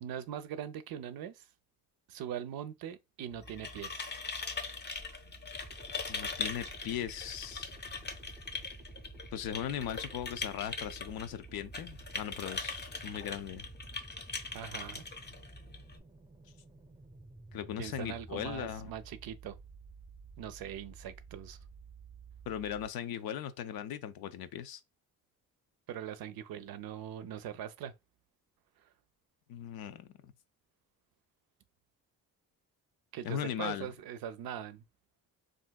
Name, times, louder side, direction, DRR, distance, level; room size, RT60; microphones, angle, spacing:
voice 1, 0.0-1.5 2.1-4.1 14.5-15.0 17.5-19.6 20.4-21.6 25.9-27.9 28.8-28.9 33.1-34.8, right 9 dB, 75° right, 0.5 m, -42 dB
sound 1, 3.3-16.0, left 4 dB, 30° left, 0.6 m, -41 dB
sound 2, 5.5-22.9, right 3 dB, 10° right, 0.6 m, -53 dB
voice 2, 6.1-7.7 9.3-13.7 17.5-18.9 22.5-24.8 29.5-30.3 33.2-33.9, left 10 dB, 75° left, 0.5 m, -38 dB
3.4 x 2.6 x 2.2 m
cardioid pair, 75°, 37 cm